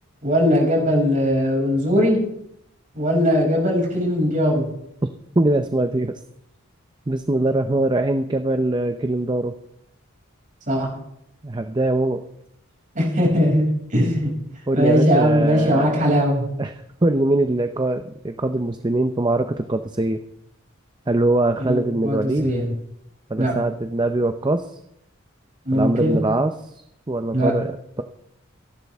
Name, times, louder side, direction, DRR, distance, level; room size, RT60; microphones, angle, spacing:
voice 1, 0.2-2.2 2.9-4.7 10.7-10.9 12.9-14.3 14.7-16.5 21.6-22.7 23.4-23.5 25.6-26.2 27.3-27.5, equal, 40° right, -2 dB, 6.5 m, -19 dB
voice 2, 5.4-6.1 7.1-9.5 11.4-12.2 14.7-16.1 16.6-16.7 17.0-20.2 21.1-22.5 23.3-24.6 25.7-27.7, right 2 dB, 20° right, 7 dB, 0.7 m, -22 dB
24.5 x 11.5 x 3.6 m, 0.77 s
head